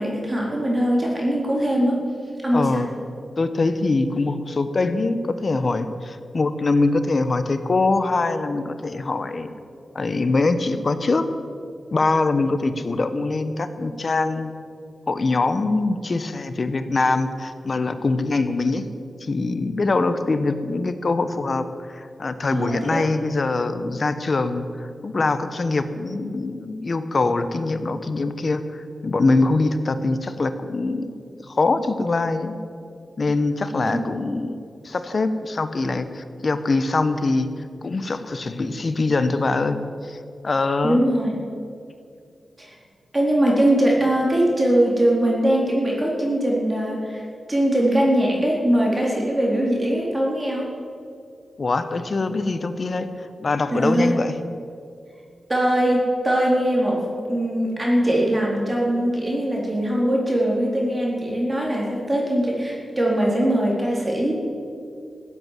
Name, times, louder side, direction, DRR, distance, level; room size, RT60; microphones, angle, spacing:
voice 1, 0.0-2.0 2.4-2.9 22.5-23.0 33.8-34.0 40.8-41.4 42.6-42.8 43.1-47.2 47.5-50.7 53.7-54.2 55.5-57.0 57.3-64.4, right 1 dB, 25° right, -3 dB, 4.0 m, -21 dB
voice 2, 2.5-2.9 3.4-9.5 9.9-11.3 11.9-14.5 15.1-18.8 19.2-31.1 31.5-32.5 33.2-37.5 37.8-41.1 51.6-53.1 53.4-54.3, left 3 dB, 50° left, 10 dB, 1.1 m, -23 dB
15.5 x 8.5 x 9.1 m, 2.4 s
cardioid pair, 75°, 0 cm